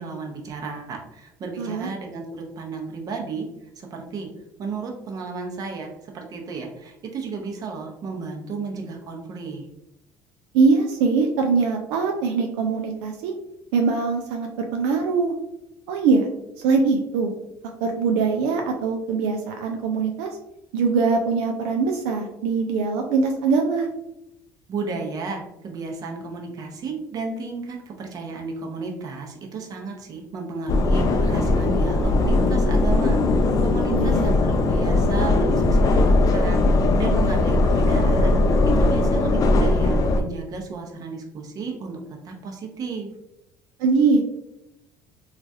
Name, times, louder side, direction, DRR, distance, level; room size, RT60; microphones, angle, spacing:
voice 1, 0.0-3.5 3.8-4.3 4.6-9.6 24.7-42.0 42.2-43.1, right 4 dB, 45° right, 1 dB, 0.7 m, -33 dB
voice 2, 1.6-1.9 10.5-13.3 13.7-15.3 15.9-16.3 16.6-17.3 17.8-20.3 20.7-23.9 33.9-34.3 43.8-44.3, right 4 dB, 85° right, 2 dB, 0.4 m, -22 dB
sound 1, 30.7-40.2, left 2 dB, 45° left, 0.4 m, -19 dB
3.1 x 2.3 x 2.6 m, 0.86 s
supercardioid pair, 95°, 9 cm